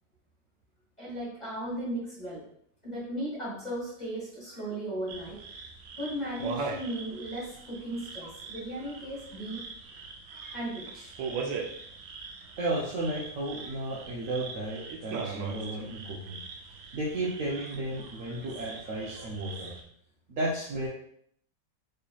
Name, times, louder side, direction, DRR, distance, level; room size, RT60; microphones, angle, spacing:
voice 1, 1.0-2.4 2.8-5.4 6.0-9.6 10.5-11.1, right 1 dB, 25° left, -7 dB, 1.1 m, -36 dB
sound 1, 5.1-19.8, right 4 dB, 85° right, 1.4 m, -41 dB
voice 2, 12.6-16.4 16.9-19.7 20.3-20.9, right 1 dB, 60° right, -5 dB, 0.8 m, -33 dB
4.9 x 2.9 x 2.3 m, 0.68 s
omnidirectional pair, 2.0 m